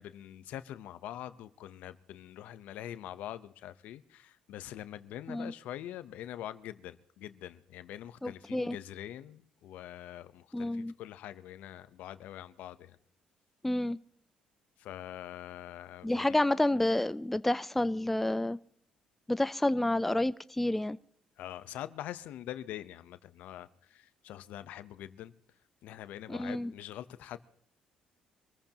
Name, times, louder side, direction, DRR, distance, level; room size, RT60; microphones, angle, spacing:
voice 1, 0.0-13.0 14.8-16.3 21.4-25.3 25.8-27.4, left 12 dB, 75° left, 0.8 m, -44 dB
voice 2, 8.2-8.8 10.5-10.9 13.6-14.0 16.0-18.6 19.3-21.0 26.3-26.7, left 1 dB, 5° left, 0.5 m, -29 dB
25.5 x 14.5 x 3.0 m
cardioid pair, 90°, 3 cm